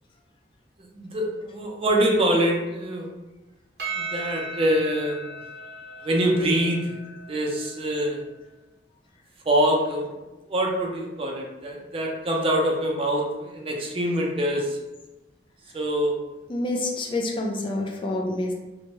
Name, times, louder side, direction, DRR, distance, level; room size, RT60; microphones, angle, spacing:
voice 1, 0.8-3.1 3.9-5.3 6.0-6.9 7.3-8.2 9.5-10.1 10.5-14.8 15.7-16.2, right 1 dB, 30° right, 0 dB, 0.5 m, -24 dB
Percussion, 3.8-8.4, right 3 dB, 65° right, 0.8 m, -37 dB
voice 2, 16.5-18.5, left 2 dB, 30° left, 1 dB, 0.3 m, -27 dB
3.0 x 2.2 x 2.8 m, 1.1 s
head